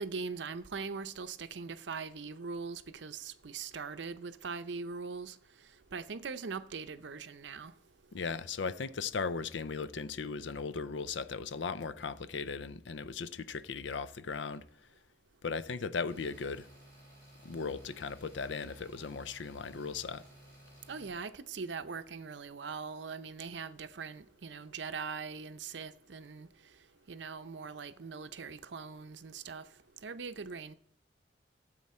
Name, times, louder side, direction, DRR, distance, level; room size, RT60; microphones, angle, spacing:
voice 1, 0.0-5.4 5.9-7.7 20.9-26.5 27.1-29.6 30.0-30.7, right 5 dB, 75° right, 0.6 m, -41 dB
voice 2, 8.1-14.6 15.4-16.7 17.4-20.2, left 5 dB, 80° left, 0.5 m, -37 dB
sound 1, 16.1-21.1, right 1 dB, 15° left, 5.4 m, -56 dB
13.0 x 7.7 x 4.3 m
head